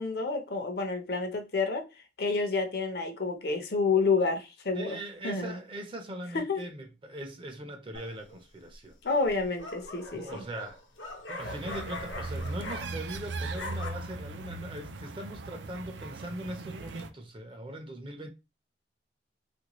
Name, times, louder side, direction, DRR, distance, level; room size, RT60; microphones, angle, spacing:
voice 1, 0.0-1.9 2.2-5.0 5.2-5.6 6.3-6.7 9.0-10.4, left 4 dB, 55° left, 0.7 m, -29 dB
voice 2, 4.7-9.0 10.1-10.8 11.3-18.3, right 1 dB, 30° right, 0.5 m, -40 dB
sound 1, 7.9-8.4 9.3-13.2 13.4-13.9, left 2 dB, 90° left, 0.9 m, -41 dB
sound 2, 11.4-17.1, right 3 dB, 75° right, 0.5 m, -39 dB
3.2 x 2.6 x 3.0 m
head